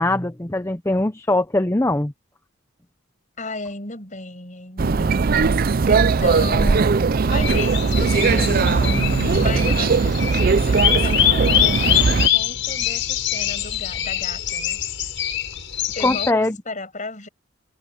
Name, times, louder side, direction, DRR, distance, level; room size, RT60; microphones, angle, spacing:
voice 1, 0.0-2.1 16.0-16.6, left 2 dB, 15° left, 0.7 m, -21 dB
voice 2, 3.4-12.0 12.3-14.8 15.9-17.3, left 3 dB, 40° left, 7.5 m, -35 dB
sound 1, 4.8-12.3, right 4 dB, 45° right, 0.5 m, -19 dB
sound 2, 6.4-13.8, equal, 85° left, 7.0 m, -34 dB
sound 3, 7.3-16.3, left 11 dB, 65° left, 6.4 m, -24 dB
head